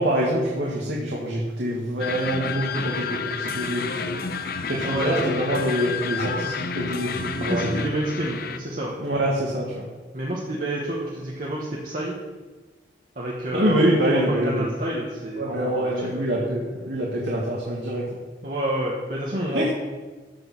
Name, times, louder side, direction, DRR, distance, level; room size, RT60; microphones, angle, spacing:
voice 1, 0.0-4.2 4.7-7.7 9.0-9.9 13.5-14.7 15.4-18.0 19.5-19.7, right 1 dB, 80° right, -4 dB, 1.9 m, -25 dB
sound 1, 2.0-8.6, left 5 dB, 55° left, 0.6 m, -30 dB
voice 2, 4.8-5.3 7.4-9.0 10.1-12.2 13.1-16.3 18.4-19.7, right 1 dB, 50° right, -4 dB, 1.5 m, -29 dB
14.5 x 5.1 x 6.1 m, 1.3 s
head